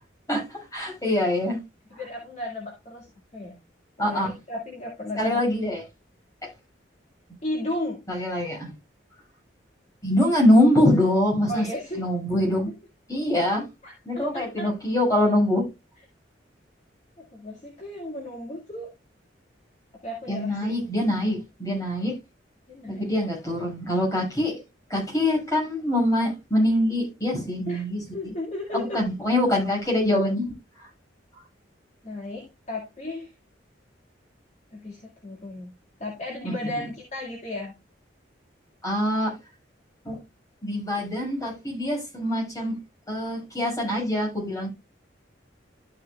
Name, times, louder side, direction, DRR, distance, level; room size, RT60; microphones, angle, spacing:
voice 1, 0.3-1.6 4.0-4.3 5.2-5.8 8.1-8.7 10.0-11.7 11.9-12.7 13.1-13.7 14.1-15.7 20.3-22.2 22.9-24.5 24.9-28.3 28.7-30.9 36.4-36.8 38.8-39.3 40.0-40.2 40.6-42.8 43.1-44.7, left 1 dB, 20° left, 5.8 m, -24 dB
voice 2, 2.0-3.1 3.3-3.6 4.0-5.4 7.4-8.0 11.5-12.0 13.8-14.7 17.3-18.9 20.0-20.7 22.7-23.0 27.7-29.0 32.0-33.3 34.7-35.7 36.0-37.8, left 1 dB, 40° left, 2.0 m, -34 dB
13.0 x 6.5 x 2.3 m
head